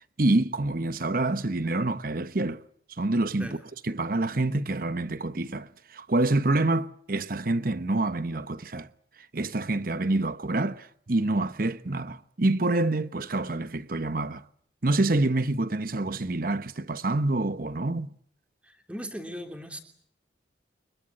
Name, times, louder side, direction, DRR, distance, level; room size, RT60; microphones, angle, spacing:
voice 1, 0.2-2.6 3.0-3.6 3.8-8.9 9.3-14.4 14.8-18.1, right 2 dB, 50° right, 1.0 m, -27 dB
voice 2, 18.6-19.8, equal, 5° right, 3.1 m, -38 dB
24.5 x 22.0 x 8.7 m
head